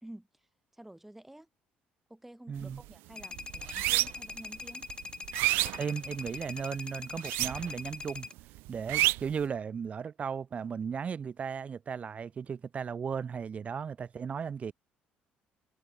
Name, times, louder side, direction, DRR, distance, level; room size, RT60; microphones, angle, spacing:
voice 1, 0.0-0.5 0.7-1.5 2.1-4.9, right 1 dB, 5° right, 1.9 m, -50 dB
voice 2, 2.5-2.8 5.7-8.3 8.7-14.7, right 6 dB, 35° right, 0.7 m, -36 dB
sound 1, 2.6-2.8 3.2-4.3 4.8-6.5 7.1-7.9 8.2-9.4, right 21 dB, 85° right, 0.3 m, -29 dB
sound 2, 3.2-8.3, left 4 dB, 25° left, 0.7 m, -42 dB
cardioid pair, 100°, 4 cm